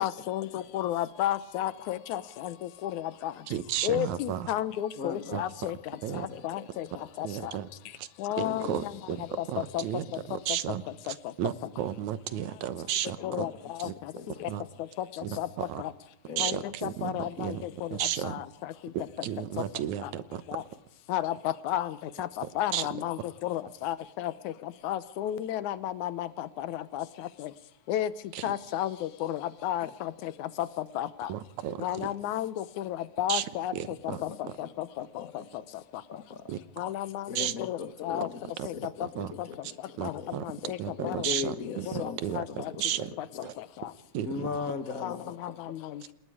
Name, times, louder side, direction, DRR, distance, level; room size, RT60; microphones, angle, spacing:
voice 1, 0.0-3.3 3.8-5.8 6.1-6.9 7.2-7.5 8.2-8.9 9.4-10.0 11.1-11.2 13.2-14.1 14.4-14.5 15.0-15.5 15.8-15.9 16.4-18.0 18.2-18.7 20.0-20.1 20.5-20.6 21.1-27.5 27.9-28.1 28.4-31.3 31.8-34.0 34.2-35.3 36.8-37.3 37.6-38.3 38.6-39.1 39.4-39.5 40.0-41.3 41.9-42.7 43.2-43.3 43.6-43.9 45.0-46.0, left 12 dB, 85° left, 15 dB, 2.3 m, -33 dB
voice 2, 3.5-4.5 5.3-5.4 6.0-6.3 7.2-7.7 8.0-8.1 8.4-9.2 9.5-13.5 13.8-13.9 14.5-14.6 15.2-15.8 16.4-17.6 17.9-18.4 18.9-20.4 22.7-22.9 28.4-28.5 31.3-32.1 33.3-33.4 33.7-34.2 36.5-36.6 37.4-37.5 38.6-38.7 39.0-39.3 40.0-40.4 40.8-43.1 43.4-43.5 44.1-44.5, right 11 dB, 75° right, 14 dB, 2.4 m, -33 dB
voice 3, 5.0-5.4 6.1-6.7 7.4-7.5 8.4-8.7 9.3-9.4 13.2-14.4 16.3-16.6 29.8-29.9 34.1-34.7 35.0-35.5 36.1-36.5 37.3-38.4 38.7-39.0 39.3-40.3 41.0-42.2 42.5-42.8 43.1-43.5 44.2-45.7, left 5 dB, 55° left, 10 dB, 0.9 m, -39 dB
29.0 x 19.5 x 4.9 m, 0.76 s
omnidirectional pair, 3.4 m